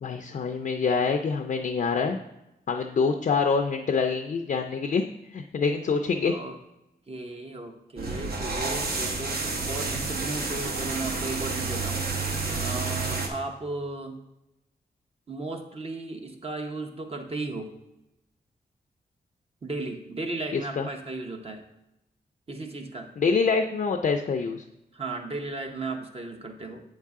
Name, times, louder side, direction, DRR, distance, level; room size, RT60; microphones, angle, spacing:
voice 1, 0.0-2.2 2.7-5.0 5.3-6.3 20.5-20.9 23.2-24.6, left 5 dB, 50° left, 4 dB, 0.4 m, -25 dB
voice 2, 6.2-6.6 7.1-12.1 12.6-14.2 15.3-17.7 19.6-21.6 22.5-23.1 24.9-26.8, right 2 dB, 35° right, 3 dB, 0.7 m, -35 dB
sound 1, 8.0-13.3, right 3 dB, 65° right, 1.0 m, -30 dB
7.9 x 5.6 x 3.6 m, 0.89 s
wide cardioid pair, 150°, 17 cm